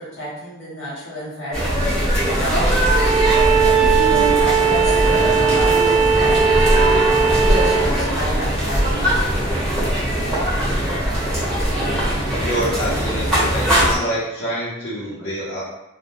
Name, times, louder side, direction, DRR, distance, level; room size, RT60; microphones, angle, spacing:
voice 1, 0.0-3.0 3.6-10.2, equal, 75° left, -7 dB, 1.0 m, -30 dB
sound 1, 1.5-14.0, equal, 5° left, 0.8 m, -20 dB
Bowed string instrument, 2.8-7.9, right 6 dB, 30° right, 0.4 m, -18 dB
voice 2, 12.4-15.6, equal, 50° left, -10 dB, 0.7 m, -26 dB
2.3 x 2.1 x 2.9 m, 0.95 s
head